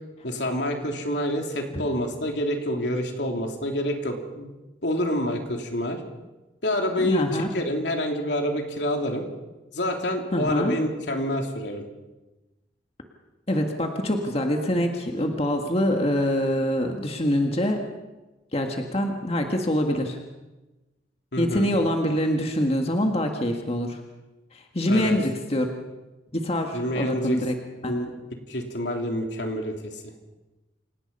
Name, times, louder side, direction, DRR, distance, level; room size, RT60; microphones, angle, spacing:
voice 1, 0.2-4.5 4.8-6.0 6.6-9.2 9.7-11.8 21.3-21.7 24.9-25.2 26.7-27.4 27.8-28.1 28.5-30.1, equal, 75° left, 3 dB, 3.1 m, -27 dB
voice 2, 7.0-7.5 10.3-10.8 13.5-17.8 18.5-20.2 21.4-24.0 24.5-25.7 26.3-27.6 27.8-27.9, left 1 dB, 35° left, 3 dB, 1.8 m, -25 dB
28.0 x 17.5 x 5.5 m, 1.1 s
head